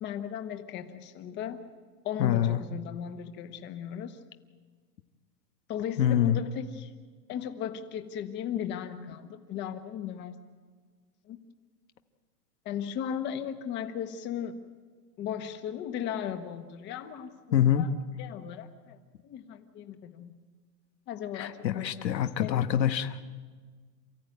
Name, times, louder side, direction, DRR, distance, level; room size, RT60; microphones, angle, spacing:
voice 1, 0.0-1.6 2.0-4.2 5.7-6.9 7.3-10.4 11.3-11.4 12.6-14.6 15.2-17.9 18.2-19.0 19.2-20.4 21.1-22.6, left 9 dB, 20° left, 8 dB, 1.3 m, -37 dB
voice 2, 2.2-2.6 6.0-6.4 17.5-17.9 21.3-23.3, left 10 dB, 80° left, 8 dB, 1.4 m, -25 dB
28.0 x 14.5 x 9.5 m, 1.5 s
hypercardioid pair, 155°, 50 cm